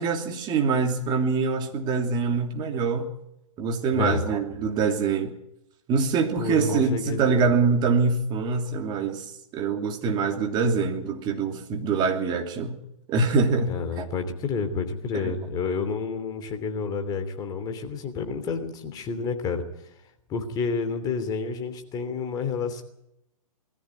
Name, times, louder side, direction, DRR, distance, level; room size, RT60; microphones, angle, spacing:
voice 1, 0.0-3.1 3.6-5.3 5.9-9.3 9.5-12.8 13.1-13.7 14.0-14.1 15.1-15.3, right 5 dB, 25° right, 4 dB, 2.9 m, -24 dB
voice 2, 6.4-7.5 13.7-19.9 20.3-22.8, left 5 dB, 20° left, 7 dB, 3.0 m, -30 dB
21.5 x 14.5 x 9.6 m, 0.80 s
hypercardioid pair, 140°, 18 cm